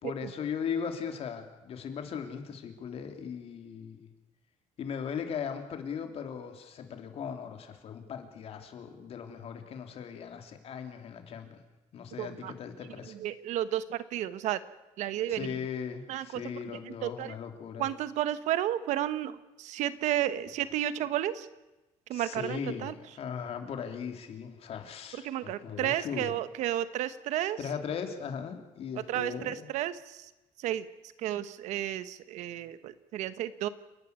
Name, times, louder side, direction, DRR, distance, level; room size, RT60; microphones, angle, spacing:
voice 1, 0.0-4.1 4.8-11.6 11.9-13.1 15.3-17.9 22.1-22.9 23.2-26.3 27.6-29.7, left 7 dB, 55° left, 6 dB, 3.2 m, -38 dB
voice 2, 12.2-12.5 12.9-14.6 15.0-15.6 16.1-16.4 16.7-17.4 17.8-21.5 22.1-22.9 25.1-27.6 29.1-30.3 30.6-30.9 31.2-33.7, right 12 dB, 85° right, 14 dB, 1.2 m, -32 dB
29.0 x 11.5 x 9.6 m, 1.0 s
cardioid pair, 120°, 12 cm